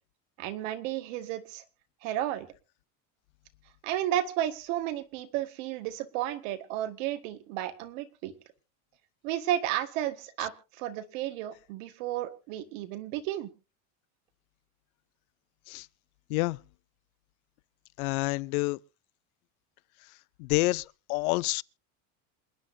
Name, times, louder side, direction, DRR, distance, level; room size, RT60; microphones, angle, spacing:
voice 1, 0.4-1.6 2.0-2.5 3.8-8.3 9.2-13.5, right 12 dB, 65° right, 1.7 m, -33 dB
voice 2, 18.0-18.8 20.4-20.8 21.1-21.6, left 23 dB, 85° left, 0.6 m, -27 dB
27.5 x 10.0 x 2.7 m
cardioid pair, 175°, 42 cm